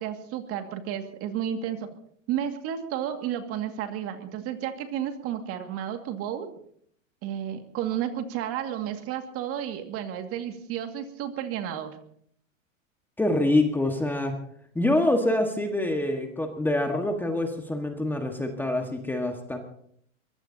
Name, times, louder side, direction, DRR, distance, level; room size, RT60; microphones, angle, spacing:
voice 1, 0.0-1.9 2.3-6.5 7.2-12.0, right 10 dB, 35° right, 6 dB, 2.2 m, -32 dB
voice 2, 13.2-14.3 14.7-19.6, left 1 dB, 5° left, 4 dB, 1.6 m, -25 dB
23.0 x 21.5 x 2.8 m, 0.64 s
hypercardioid pair, 135°, 40 cm